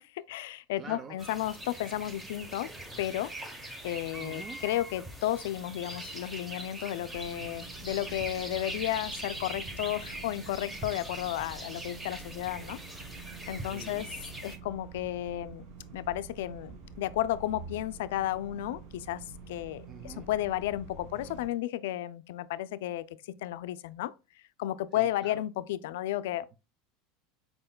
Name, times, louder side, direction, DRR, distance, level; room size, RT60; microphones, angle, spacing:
voice 1, 0.0-2.7 3.0-3.3 3.8-12.8 13.5-14.1 14.4-15.7 15.9-24.1 24.6-26.5, left 13 dB, 80° left, 0.3 m, -33 dB
voice 2, 0.8-1.2 4.2-4.6 13.6-14.1 19.9-20.3 24.9-25.4, right 5 dB, 35° right, 0.5 m, -46 dB
sound 1, 1.2-14.6, right 1 dB, 15° right, 1.0 m, -42 dB
sound 2, 7.1-21.5, right 4 dB, 70° right, 1.8 m, -48 dB
5.5 x 4.3 x 2.2 m
supercardioid pair, 110°, 0 cm